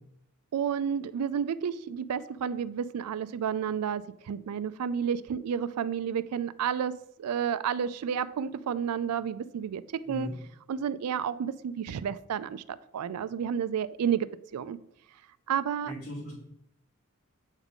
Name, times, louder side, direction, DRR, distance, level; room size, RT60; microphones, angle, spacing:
voice 1, 0.5-6.9 7.2-10.3 10.7-14.8 15.5-15.9, right 8 dB, 90° right, 16 dB, 0.4 m, -31 dB
voice 2, 15.9-16.5, equal, 80° left, -8 dB, 2.0 m, -38 dB
8.1 x 3.7 x 3.6 m, 0.77 s
head